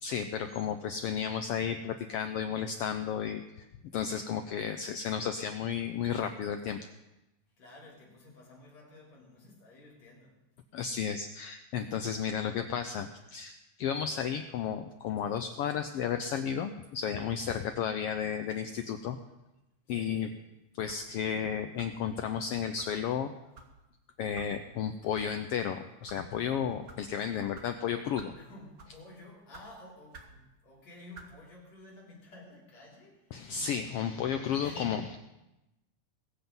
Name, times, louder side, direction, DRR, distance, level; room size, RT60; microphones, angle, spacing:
voice 1, 0.0-3.7 3.9-6.8 10.7-19.2 19.9-20.3 20.7-23.3 24.2-28.3 33.3-35.2, left 8 dB, 85° left, 8 dB, 1.3 m, -33 dB
voice 2, 7.6-10.4 19.9-20.4 28.3-33.3 34.6-35.0, left 2 dB, 65° left, -4 dB, 5.0 m, -52 dB
sound 1, 20.9-21.1 21.8-22.1 22.8-22.9 23.5-23.7 24.3-24.5 25.1-25.3 25.9-26.2 26.9-27.0 27.5-27.7 28.2-28.4 28.8-29.0 29.5-29.7 30.1-30.4 31.1-31.3, right 3 dB, 45° right, 1.2 m, -50 dB
21.0 x 7.9 x 5.4 m, 0.97 s
omnidirectional pair, 3.3 m